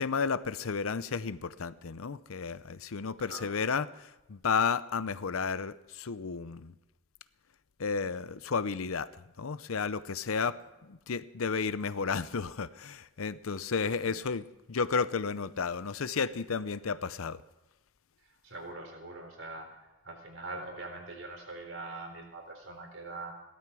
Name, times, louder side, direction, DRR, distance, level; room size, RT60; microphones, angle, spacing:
voice 1, 0.0-6.7 7.8-9.1 9.4-17.4, left 5 dB, 85° left, 15 dB, 0.6 m, -32 dB
voice 2, 13.8-14.2 18.4-19.7 20.0-23.3, right 2 dB, 70° right, 3 dB, 3.9 m, -43 dB
17.0 x 13.0 x 6.2 m, 1.0 s
head